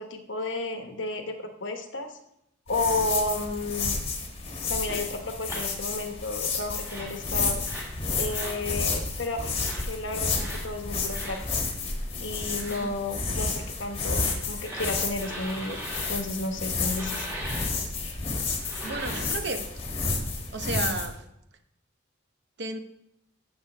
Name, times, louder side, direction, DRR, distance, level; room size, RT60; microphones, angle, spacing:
voice 1, 0.0-2.1 2.7-4.0 4.7-7.6 8.2-9.5 9.8-11.4 12.2-13.5 13.8-17.3, left 2 dB, 65° left, 5 dB, 1.1 m, -32 dB
sound 1, 2.7-21.1, left 4 dB, 30° left, 1.3 m, -31 dB
sound 2, 4.9-5.0 5.5-5.7 6.7-7.2 7.6-7.9 8.3-8.6 9.5-9.8 10.3-10.6 11.1-11.4 12.4-12.9 14.0-16.1 16.9-17.7 18.6-19.4, right 1 dB, 15° right, 2.1 m, -39 dB
voice 2, 18.8-19.6 20.5-21.2 22.6-22.8, right 3 dB, 55° right, 8 dB, 0.8 m, -33 dB
14.5 x 6.7 x 3.3 m, 0.80 s
head